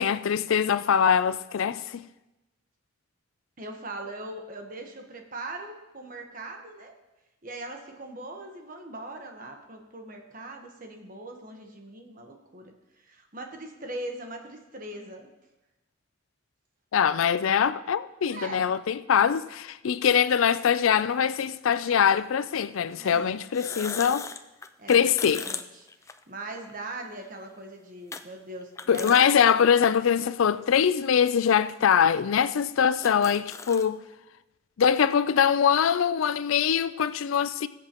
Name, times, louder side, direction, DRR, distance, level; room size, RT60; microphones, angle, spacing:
voice 1, 0.0-2.0 16.9-24.3 24.9-25.4 28.9-34.0 34.8-37.7, left 7 dB, 90° left, 0.4 m, -23 dB
voice 2, 3.6-6.9 7.4-12.7 13.0-15.3 18.3-18.7 22.9-23.4 24.8-25.9 26.3-29.2, right 2 dB, 45° right, 1.2 m, -40 dB
sound 1, 20.5-20.6 21.8-22.0 23.4-26.7 27.1-27.2 28.1-28.2 28.6-29.2 29.7-29.8 30.7-30.8 31.6-31.7 31.9-32.0 32.5-32.6 32.8-33.9, left 5 dB, 15° left, 0.3 m, -39 dB
19.5 x 7.7 x 3.0 m
head